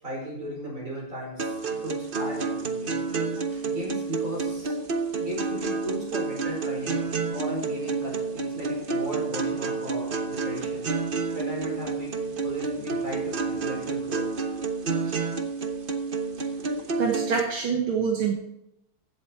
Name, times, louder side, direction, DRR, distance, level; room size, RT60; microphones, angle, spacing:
voice 1, 0.0-3.2 3.5-4.8 5.2-10.9 11.3-14.3 15.0-15.3, equal, 40° right, -3 dB, 5.4 m, -36 dB
sound 1, 1.4-17.4, right 4 dB, 55° right, 0.6 m, -29 dB
voice 2, 17.0-18.3, right 6 dB, 80° right, 0 dB, 2.2 m, -25 dB
15.0 x 8.0 x 4.7 m, 0.84 s
omnidirectional pair, 2.3 m